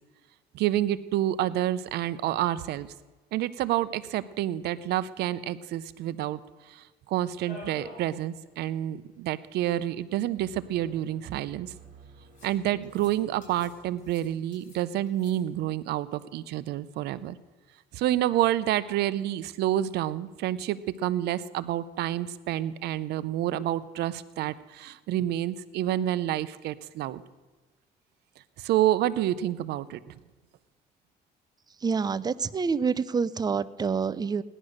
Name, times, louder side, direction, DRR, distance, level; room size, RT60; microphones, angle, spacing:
voice 1, 0.5-2.9 3.3-6.4 6.6-11.7 12.4-17.4 17.9-27.2 28.6-30.2, right 13 dB, 75° right, 16 dB, 0.7 m, -28 dB
sound 1, 7.4-8.1 8.5-8.6 8.8-8.9 9.9-10.0 10.8-11.4 12.3-12.6 12.8-13.1 13.4-13.7 14.0-14.8 15.1-15.3, left 1 dB, 45° left, 6.4 m, -47 dB
sound 2, 10.4-14.4, right 5 dB, 45° right, 2.6 m, -54 dB
voice 2, 31.8-34.4, right 5 dB, 25° right, 16 dB, 0.5 m, -27 dB
17.0 x 11.0 x 6.5 m, 1.2 s
cardioid pair, 110°, 17 cm